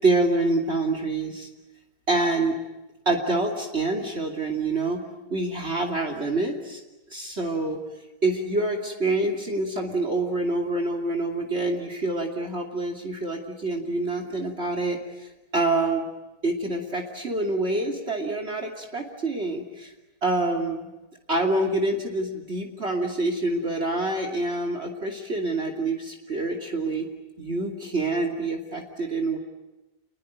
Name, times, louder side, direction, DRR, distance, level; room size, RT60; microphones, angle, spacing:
voice 1, 0.0-1.5 2.1-2.5 3.0-5.0 5.3-6.8 7.1-7.8 8.2-16.1 16.4-19.9 20.2-20.9 21.3-27.1 27.4-29.4, right 2 dB, 40° right, 3 dB, 3.1 m, -26 dB
29.0 x 22.0 x 9.3 m, 1.0 s
omnidirectional pair, 1.8 m